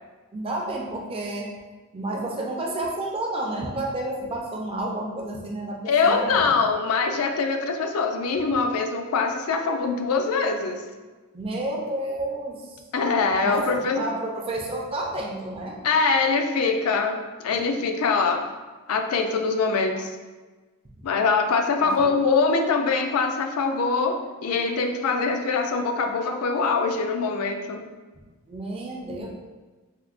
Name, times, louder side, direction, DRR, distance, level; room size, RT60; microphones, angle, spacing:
voice 1, 0.3-1.5 1.9-6.6 11.3-12.8 13.4-15.8 21.8-22.2 28.5-29.3, right 1 dB, 25° right, 0 dB, 0.4 m, -31 dB
voice 2, 5.9-10.8 12.9-14.0 15.8-18.5 18.9-20.1 21.0-27.8, left 4 dB, 80° left, 4 dB, 0.4 m, -23 dB
4.4 x 2.0 x 2.4 m, 1.3 s
head